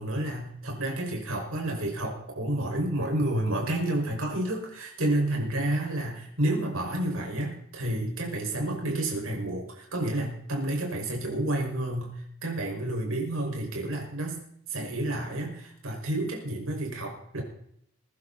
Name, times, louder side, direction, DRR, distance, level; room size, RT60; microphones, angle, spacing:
voice 1, 0.0-14.4 14.7-17.4, right 1 dB, 65° right, 0 dB, 5.4 m, -30 dB
22.0 x 11.5 x 4.1 m, 0.72 s
head